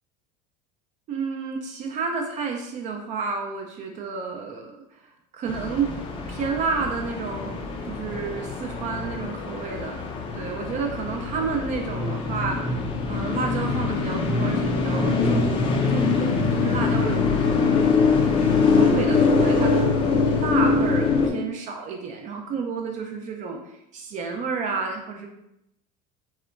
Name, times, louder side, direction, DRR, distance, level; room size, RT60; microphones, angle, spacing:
voice 1, 1.1-4.8 5.3-5.9 6.3-7.6 7.9-10.1 10.3-12.7 13.1-17.9 18.3-23.6 23.9-25.3, right 5 dB, 40° right, 2 dB, 0.4 m, -30 dB
sound 1, 5.5-21.3, left 4 dB, 25° left, 0.4 m, -23 dB
2.8 x 2.1 x 2.4 m, 0.81 s
supercardioid pair, 130°, 20 cm